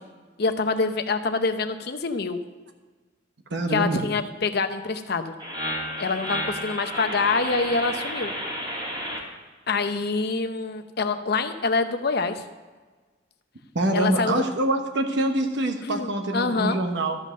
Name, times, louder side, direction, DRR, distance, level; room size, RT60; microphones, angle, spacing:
voice 1, 0.4-2.4 3.7-5.3 6.0-8.3 9.7-12.4 13.9-14.4 15.8-16.8, left 4 dB, 55° left, 8 dB, 0.7 m, -26 dB
voice 2, 3.5-4.0 13.7-17.2, right 1 dB, 65° right, 4 dB, 1.1 m, -25 dB
sound 1, 5.4-9.2, equal, 25° right, 2.8 m, -31 dB
13.0 x 5.4 x 6.4 m, 1.4 s
head